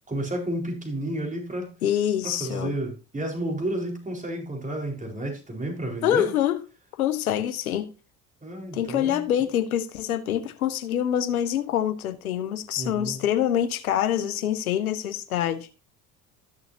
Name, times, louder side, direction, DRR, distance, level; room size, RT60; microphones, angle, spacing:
voice 1, 0.1-1.7 2.2-6.3 8.4-9.3 12.7-13.2, right 1 dB, 20° right, 4.5 m, -31 dB
voice 2, 1.8-2.8 6.0-6.6 7.0-7.9 8.7-15.7, left 10 dB, 85° left, 1.2 m, -25 dB
14.0 x 6.9 x 2.8 m
hypercardioid pair, 65°, 42 cm